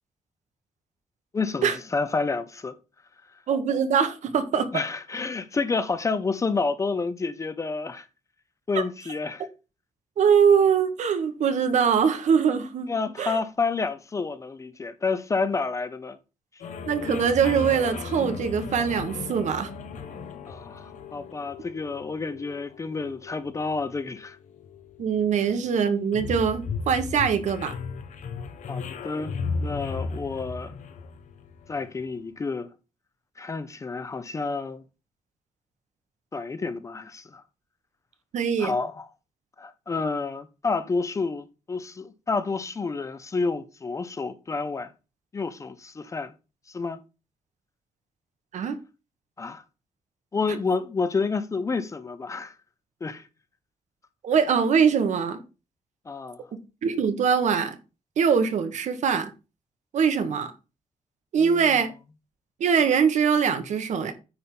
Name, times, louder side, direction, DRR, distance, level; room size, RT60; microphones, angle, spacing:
voice 1, 1.3-2.8 4.7-8.1 8.7-9.5 12.9-16.2 20.5-24.4 28.7-29.3 29.6-30.8 31.7-32.7 33.4-34.8 36.3-37.4 38.6-39.1 39.6-44.9 45.3-46.3 46.7-47.0 49.4-49.6 50.3-52.5 53.0-53.3 56.1-56.4 61.4-61.7, left 4 dB, 25° left, 0.7 m, -29 dB
voice 2, 3.5-4.7 10.2-12.9 13.2-13.4 16.9-19.7 25.0-27.7 38.3-38.7 48.5-48.8 54.2-55.4 56.8-57.8 58.2-59.3 59.9-60.5 61.3-61.9 62.6-64.1, right 6 dB, 70° right, 1.3 m, -22 dB
sound 1, 16.6-32.0, left 4 dB, 70° left, 1.2 m, -36 dB
9.5 x 3.6 x 6.0 m
wide cardioid pair, 175°, 13 cm